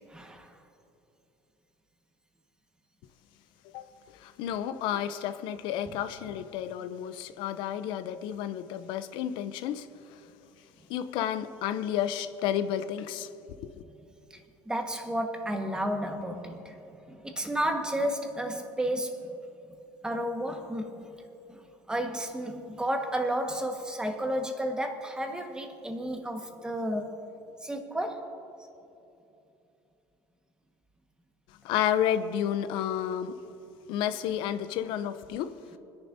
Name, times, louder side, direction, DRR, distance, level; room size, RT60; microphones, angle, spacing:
voice 1, 0.1-0.5 14.3-14.4 14.7-16.8 17.1-19.3 20.0-21.1 21.5-27.2 27.6-28.3, right 1 dB, 10° right, 1.5 m, -32 dB
voice 2, 4.2-9.9 10.9-13.3 13.6-13.7 31.6-33.4 33.9-35.5, left 10 dB, 65° left, 0.6 m, -31 dB
27.5 x 10.5 x 2.7 m
supercardioid pair, 115°, 9 cm